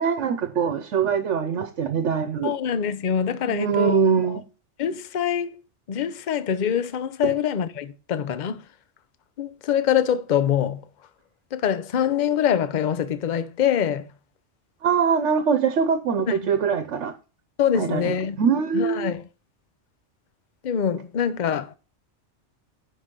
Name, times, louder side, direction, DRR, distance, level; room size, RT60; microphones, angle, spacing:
voice 1, 0.0-2.5 3.4-4.4 14.8-17.1 17.7-19.1, right 6 dB, 80° right, 1.1 m, -23 dB
voice 2, 2.4-4.0 4.8-5.5 5.9-8.6 9.4-10.8 11.5-14.0 16.3-16.5 17.6-18.4 18.7-19.2 20.6-21.8, left 9 dB, 45° left, 0.7 m, -24 dB
9.7 x 5.5 x 3.7 m
omnidirectional pair, 1.2 m